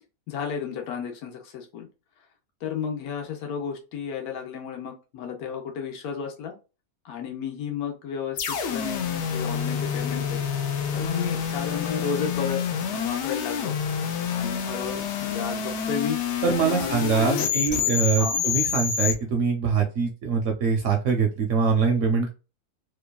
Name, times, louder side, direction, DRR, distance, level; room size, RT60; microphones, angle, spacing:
voice 1, 0.3-1.9 2.6-6.5 7.0-10.4 10.9-12.6 12.9-13.8 14.3-16.2 16.6-17.9 18.2-18.4, left 7 dB, 80° left, 2 dB, 1.2 m, -33 dB
sound 1, 8.4-19.1, left 7 dB, 65° left, 0.7 m, -28 dB
voice 2, 16.4-22.3, right 5 dB, 70° right, 3 dB, 0.8 m, -23 dB
2.9 x 2.3 x 2.2 m, 0.31 s
omnidirectional pair, 1.5 m